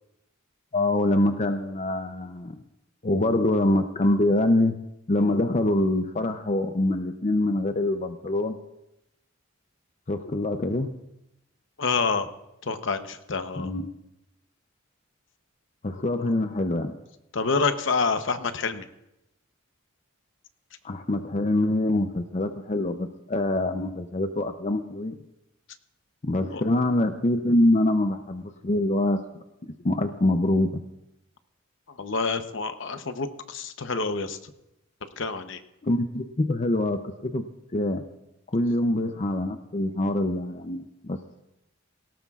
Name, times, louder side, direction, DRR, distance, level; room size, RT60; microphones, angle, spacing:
voice 1, 0.7-2.6 3.0-4.8 5.1-8.6 10.1-10.9 13.6-13.9 15.8-16.9 20.8-25.2 26.2-29.2 29.6-30.8 35.8-37.4 37.7-38.0 38.5-41.2, left 1 dB, 35° left, 7 dB, 0.5 m, -25 dB
voice 2, 11.8-12.3 12.6-13.7 17.3-18.8 26.5-26.6 32.0-34.5 35.2-35.6, left 4 dB, 65° left, 9 dB, 0.9 m, -27 dB
18.0 x 17.5 x 2.4 m, 0.87 s
head